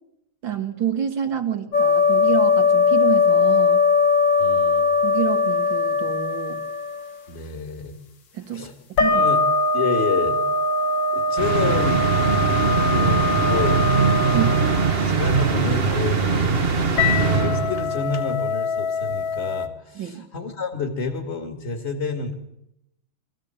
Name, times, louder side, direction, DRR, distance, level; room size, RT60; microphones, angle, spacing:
voice 1, 0.4-3.8 5.0-6.6 8.3-9.2 14.3-14.6 19.9-20.3, right 9 dB, 70° right, 6 dB, 2.5 m, -28 dB
sound 1, 1.7-7.0 9.0-15.3 17.0-19.7, left 4 dB, 65° left, 2.2 m, -21 dB
voice 2, 4.4-4.9 7.3-8.0 8.5-8.7 9.1-9.4 9.7-10.4 11.1-12.1 12.5-13.9 14.3-14.6 15.0-16.4 16.7-22.3, left 5 dB, 35° left, 5 dB, 2.3 m, -29 dB
sound 2, 11.4-18.1, right 4 dB, 35° right, 1.4 m, -21 dB
24.0 x 15.0 x 9.0 m, 0.82 s
omnidirectional pair, 2.2 m